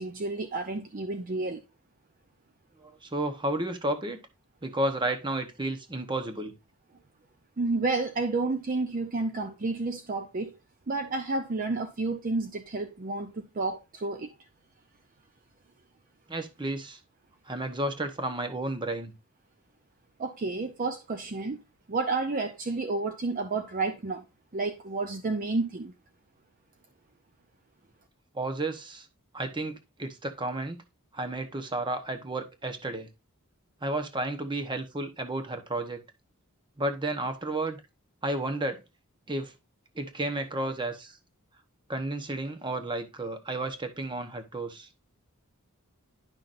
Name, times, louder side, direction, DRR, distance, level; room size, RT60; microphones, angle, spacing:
voice 1, 0.0-1.6 7.6-10.6 10.9-14.3 20.2-21.6 21.9-24.2 24.5-25.9, right 3 dB, 40° right, 0.6 m, -30 dB
voice 2, 2.8-4.2 4.6-6.5 16.3-17.0 17.5-19.1 28.3-29.1 29.3-30.8 31.1-33.1 33.8-36.0 36.8-37.8 38.2-38.8 39.3-39.5 39.9-41.2 41.9-44.9, right 2 dB, 20° right, 1.0 m, -32 dB
10.5 x 5.8 x 2.6 m
head